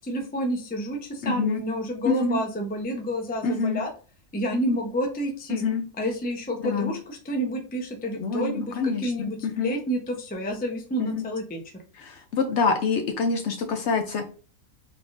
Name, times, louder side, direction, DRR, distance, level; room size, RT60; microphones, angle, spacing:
voice 1, 0.0-3.9 4.3-5.6 6.0-11.6, equal, 15° left, 1 dB, 0.3 m, -29 dB
voice 2, 1.2-1.6 2.1-2.4 3.4-3.8 5.5-5.8 6.6-6.9 8.2-9.7 11.0-11.2 12.0-14.3, left 4 dB, 65° left, 6 dB, 0.7 m, -26 dB
3.7 x 3.3 x 2.5 m, 0.38 s
omnidirectional pair, 1.5 m